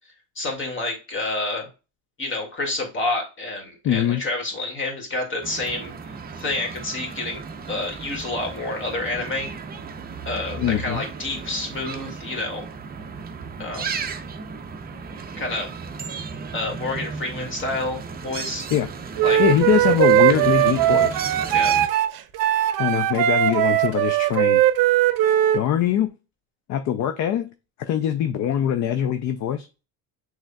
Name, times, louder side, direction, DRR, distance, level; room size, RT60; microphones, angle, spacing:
voice 1, 0.4-1.7 2.2-5.9 6.4-7.4 7.7-9.5 10.3-12.6 13.6-14.0 15.4-15.7 16.5-18.7 19.2-19.4 21.5-21.7, left 2 dB, 30° left, 2 dB, 2.1 m, -29 dB
voice 2, 3.8-4.2 10.6-11.0 18.7-18.9 19.4-21.2 22.8-24.6 25.2-26.1 26.7-27.5 27.9-29.7, left 10 dB, 45° left, 9 dB, 0.5 m, -23 dB
sound 1, 5.4-21.9, right 5 dB, 25° right, 0.6 m, -35 dB
Wind instrument woodwind instrument, 19.2-25.6, right 12 dB, 55° right, 0.7 m, -19 dB
6.2 x 3.4 x 2.3 m, 0.30 s
cardioid pair, 120°, 41 cm